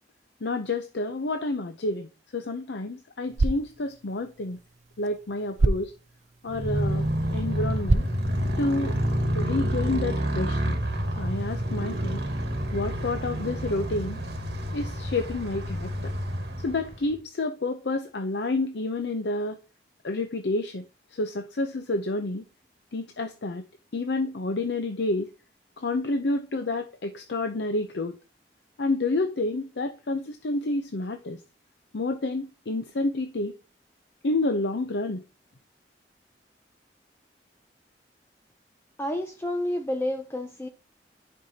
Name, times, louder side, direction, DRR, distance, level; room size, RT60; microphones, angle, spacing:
voice 1, 0.4-2.1 2.3-4.6 5.0-5.9 6.4-7.1 7.3-8.1 8.6-8.9 9.3-10.8 11.2-12.2 12.7-14.2 14.7-16.1 16.6-19.6 20.0-20.9 21.1-22.4 22.9-23.6 23.9-25.3 25.8-28.2 28.8-31.4 31.9-33.5 34.2-35.2, left 2 dB, 80° left, 0.7 m, -29 dB
sound 1, 3.2-9.2, right 3 dB, 40° right, 0.4 m, -30 dB
Motorcycle, 6.5-17.1, equal, 65° right, 1.5 m, -29 dB
voice 2, 39.0-40.7, left 1 dB, 15° left, 0.5 m, -29 dB
11.0 x 5.4 x 2.8 m
head